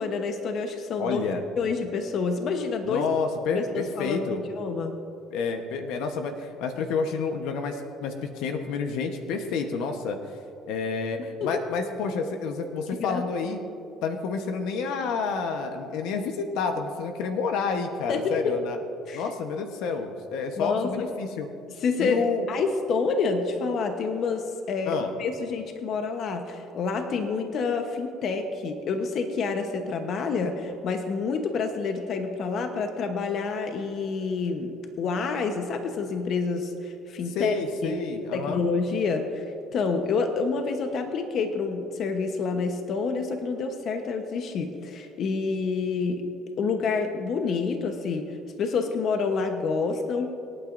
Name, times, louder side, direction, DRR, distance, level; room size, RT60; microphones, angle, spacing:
voice 1, 0.0-3.0 3.5-4.9 11.4-11.6 13.0-13.2 18.1-18.6 19.1-19.2 20.6-20.9 21.8-37.5 37.8-38.0 38.3-39.4 39.7-46.2 46.6-50.4, left 4 dB, 55° left, 6 dB, 1.0 m, -28 dB
voice 2, 1.0-1.4 2.8-4.4 5.3-10.2 10.7-13.6 14.0-18.8 19.1-21.5 22.0-22.5 24.9-25.1 37.3-38.6, left 5 dB, 80° left, 5 dB, 1.0 m, -29 dB
25.5 x 9.0 x 2.6 m, 2.6 s
cardioid pair, 105°, 0 cm